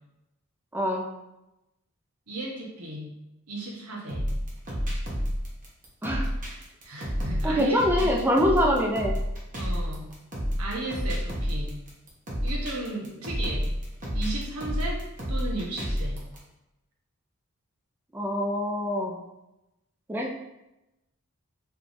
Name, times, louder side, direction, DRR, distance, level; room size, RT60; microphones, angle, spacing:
voice 1, 0.7-1.1 6.0-6.3 7.4-9.2 18.1-19.2 20.1-20.3, equal, 10° right, -2 dB, 0.5 m, -24 dB
voice 2, 2.3-3.1 3.5-4.2 6.8-7.8 9.6-10.1 10.6-11.7 12.4-13.7 14.1-16.2, right 1 dB, 90° right, -1 dB, 1.1 m, -35 dB
sound 1, 4.1-16.4, equal, 35° right, 1.1 m, -30 dB
4.8 x 3.4 x 2.6 m, 0.92 s
head